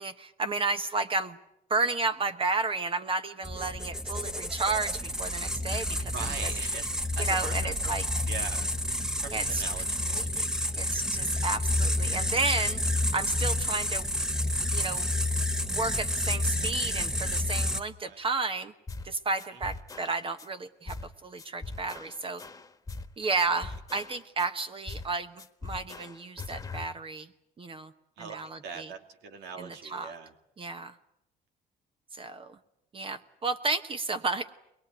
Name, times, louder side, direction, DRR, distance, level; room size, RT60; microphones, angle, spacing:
voice 1, 0.0-1.4 1.7-6.1 7.3-8.0 9.3-9.6 10.3-10.5 10.8-12.8 13.1-14.1 14.7-15.1 15.7-18.7 19.0-21.0 21.2-22.4 23.2-25.3 25.6-27.3 27.6-27.9 28.2-28.5 29.6-30.1 30.6-30.9 32.2-32.6 32.9-34.5, right 3 dB, 30° right, 9 dB, 1.2 m, -32 dB
sound 1, 3.4-17.8, left 1 dB, 5° right, 1.3 m, -29 dB
voice 2, 6.1-7.9 8.3-8.7 9.2-10.3 18.1-18.2 19.5-19.6 23.3-23.6 28.2-30.4, right 5 dB, 85° right, 6 dB, 2.6 m, -42 dB
sound 2, 18.9-19.1 19.4-20.5 20.9-21.1 21.4-23.1 23.4-24.5 24.9-25.1 25.4-26.9, left 3 dB, 20° left, 1.6 m, -41 dB
22.5 x 22.0 x 9.2 m, 0.81 s
cardioid pair, 110°, 17 cm